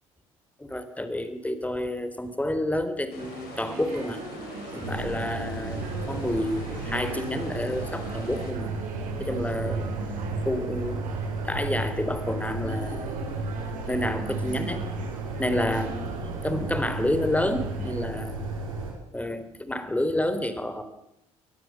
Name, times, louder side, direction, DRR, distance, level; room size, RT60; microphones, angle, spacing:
voice 1, 0.6-4.2 4.7-8.7 9.2-9.9 10.5-11.1 11.4-13.2 13.9-14.9 15.4-16.1 16.4-18.3 19.1-20.8, left 1 dB, 10° left, 11 dB, 3.9 m, -29 dB
sound 1, 3.1-8.5, left 6 dB, 65° left, 4.6 m, -45 dB
sound 2, 3.2-18.1, right 4 dB, 50° right, 6.9 m, -41 dB
sound 3, 4.8-18.9, right 3 dB, 85° right, 4.6 m, -33 dB
22.5 x 21.0 x 7.4 m, 0.81 s
figure-of-eight pair, 50°, 17 cm